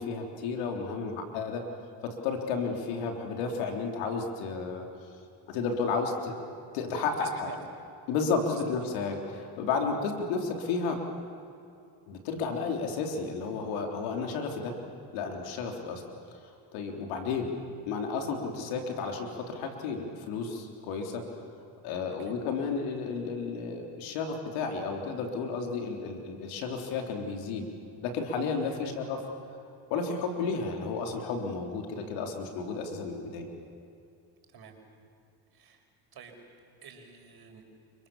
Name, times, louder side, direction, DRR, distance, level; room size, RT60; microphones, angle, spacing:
voice 1, 0.0-1.6 2.0-4.9 5.5-6.3 6.7-7.5 8.1-11.0 12.1-14.7 15.1-16.0 16.7-17.5 17.9-21.2 21.8-27.7 28.0-29.2 29.9-33.5, left 4 dB, 85° left, 3 dB, 3.8 m, -32 dB
voice 2, 7.2-7.6 8.5-8.6 22.2-22.3 28.7-29.0 34.5-34.8 35.5-35.8 36.1-36.4 36.8-37.6, right 7 dB, 55° right, 4 dB, 5.5 m, -49 dB
29.5 x 24.5 x 7.3 m, 2.6 s
supercardioid pair, 85°, 46 cm